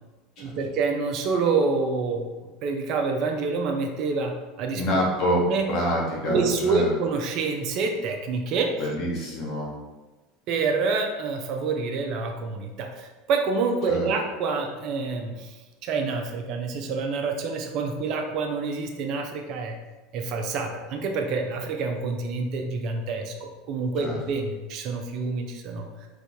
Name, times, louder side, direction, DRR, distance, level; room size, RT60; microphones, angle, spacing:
voice 1, 0.4-2.3 2.6-4.8 5.5-5.7 6.3-8.7 10.5-15.6 15.8-19.8 20.1-26.1, right 4 dB, 45° right, 3 dB, 0.5 m, -27 dB
voice 2, 4.7-5.4 5.7-6.9 8.8-9.7 13.9-14.1 24.0-24.2, equal, 45° left, -3 dB, 1.2 m, -26 dB
3.9 x 3.2 x 3.6 m, 1.2 s
figure-of-eight pair, 75°, 0 cm